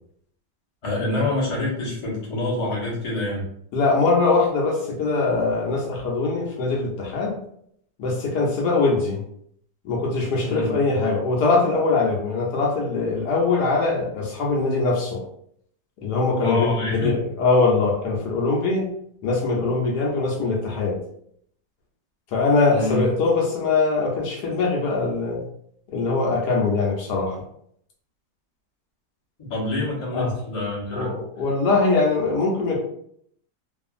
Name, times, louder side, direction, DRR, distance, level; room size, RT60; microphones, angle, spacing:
voice 1, 0.8-3.4 10.4-10.7 16.4-17.2 22.7-23.0 29.4-31.1, left 2 dB, 25° left, -6 dB, 0.7 m, -26 dB
voice 2, 3.7-7.4 8.0-9.2 9.8-15.2 16.0-18.8 19.2-21.0 22.3-25.4 25.9-27.4 30.1-30.3 30.9-32.8, left 3 dB, 70° left, -1 dB, 1.1 m, -22 dB
2.7 x 2.4 x 2.4 m, 0.68 s
omnidirectional pair, 1.9 m